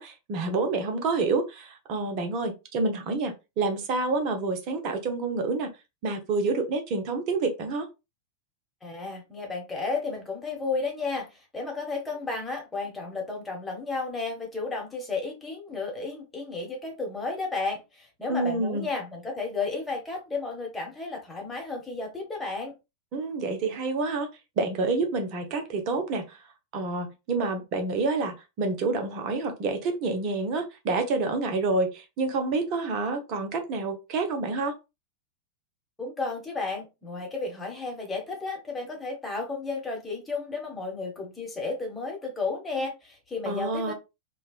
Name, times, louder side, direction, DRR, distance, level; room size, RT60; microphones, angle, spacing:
voice 1, 0.0-5.7 6.0-7.9 18.3-18.9 23.1-24.3 24.6-26.4 26.7-34.7 43.5-43.9, right 3 dB, 40° right, 0.6 m, -28 dB
voice 2, 8.8-22.7 36.0-43.9, left 3 dB, 10° left, 1.1 m, -33 dB
3.3 x 2.2 x 2.3 m
figure-of-eight pair, 90°, 0 cm